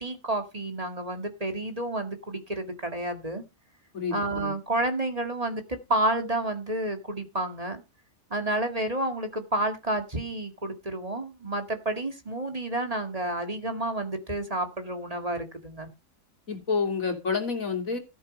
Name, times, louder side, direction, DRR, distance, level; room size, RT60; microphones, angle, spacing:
voice 1, 0.0-3.4 4.1-7.8 8.3-15.9, right 1 dB, 25° right, 6 dB, 2.2 m, -30 dB
voice 2, 3.9-4.5 16.5-18.0, left 5 dB, 75° left, 4 dB, 3.5 m, -29 dB
14.0 x 7.7 x 5.4 m, 0.26 s
omnidirectional pair, 1.4 m